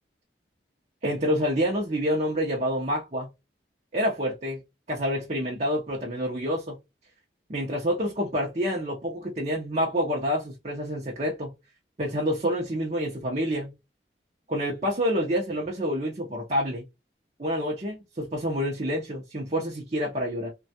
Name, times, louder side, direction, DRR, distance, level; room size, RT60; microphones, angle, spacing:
voice 1, 1.0-3.3 3.9-4.6 4.9-6.8 7.5-11.5 12.0-13.7 14.5-16.8 17.4-20.5, equal, 40° right, 0.7 m, -28 dB
3.3 x 2.3 x 2.7 m
head